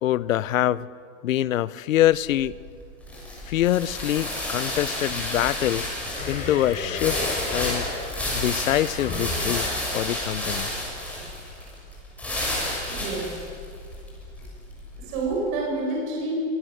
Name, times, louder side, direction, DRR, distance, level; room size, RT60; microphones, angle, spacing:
voice 1, 0.0-0.9 1.2-2.6 3.5-5.9 6.3-7.2 7.5-7.9 8.3-9.7 9.9-10.7, left 13 dB, 80° left, 20 dB, 0.8 m, -24 dB
sound 1, 2.1-15.4, left 1 dB, 5° left, 6.7 m, -31 dB
sound 2, 6.1-10.8, left 3 dB, 20° left, 4.0 m, -35 dB
voice 2, 12.9-13.3 15.0-16.3, right 3 dB, 45° right, -1 dB, 7.0 m, -28 dB
24.0 x 19.5 x 7.9 m, 2.3 s
hypercardioid pair, 150°, 39 cm